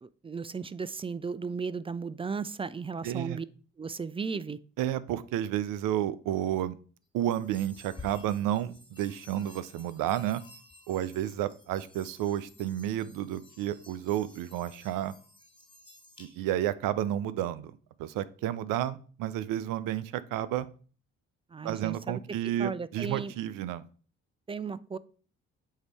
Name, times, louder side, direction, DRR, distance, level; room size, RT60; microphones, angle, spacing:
voice 1, 0.0-3.5 3.8-4.6 21.5-22.2 22.6-23.3 24.5-25.0, right 5 dB, 15° right, 0.4 m, -35 dB
voice 2, 3.0-3.4 4.8-6.8 7.1-10.4 10.9-15.1 16.2-17.7 18.0-20.7 21.6-23.9, right 12 dB, 70° right, 0.6 m, -31 dB
sound 1, 7.2-16.7, left 3 dB, 15° left, 1.5 m, -53 dB
8.1 x 2.8 x 4.7 m
hypercardioid pair, 50°, 34 cm